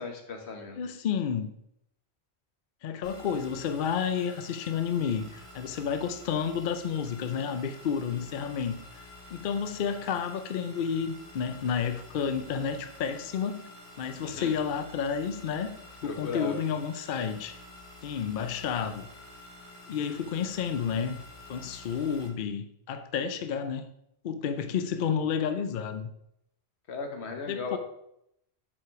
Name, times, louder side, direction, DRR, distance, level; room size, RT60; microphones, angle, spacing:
voice 1, 0.0-0.8 14.2-14.5 16.0-16.6 26.9-27.8, left 4 dB, 80° left, 1.4 m, -36 dB
voice 2, 0.8-1.5 2.8-13.7 14.0-15.8 16.0-17.6 18.0-19.1 19.9-21.2 21.5-23.9 24.2-26.1 27.5-27.8, left 7 dB, 60° left, 0.7 m, -31 dB
sound 1, 3.0-22.3, left 2 dB, 35° left, 2.0 m, -49 dB
7.3 x 4.9 x 4.6 m
omnidirectional pair, 1.1 m